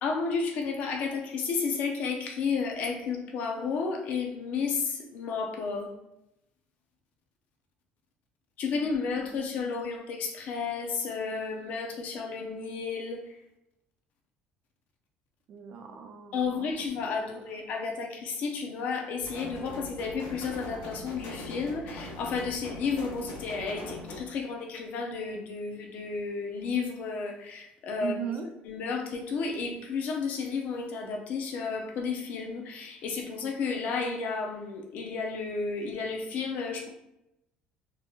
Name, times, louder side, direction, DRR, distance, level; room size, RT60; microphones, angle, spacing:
voice 1, 0.0-5.9 8.6-13.4 16.3-28.2 28.6-36.9, left 5 dB, 50° left, 2 dB, 0.6 m, -32 dB
voice 2, 8.7-10.0 15.5-17.4 28.0-28.5, right 8 dB, 45° right, 5 dB, 0.5 m, -40 dB
sound 1, 19.2-24.2, left 1 dB, 75° left, 1.3 m, -41 dB
3.8 x 3.0 x 2.3 m, 0.85 s
cardioid pair, 175°, 3 cm